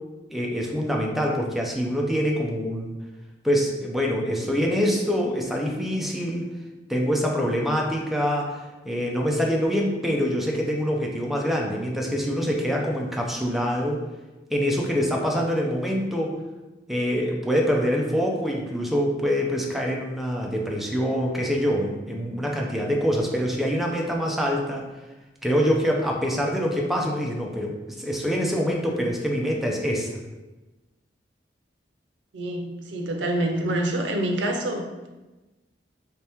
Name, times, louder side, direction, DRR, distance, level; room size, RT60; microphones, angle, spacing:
voice 1, 0.3-2.9 3.4-6.5 6.9-14.0 14.5-16.4 16.9-24.8 25.4-30.2, equal, ahead, -1 dB, 0.5 m, -25 dB
voice 2, 32.3-35.1, right 1 dB, 90° right, 2 dB, 0.6 m, -27 dB
3.4 x 2.8 x 3.4 m, 1.1 s
head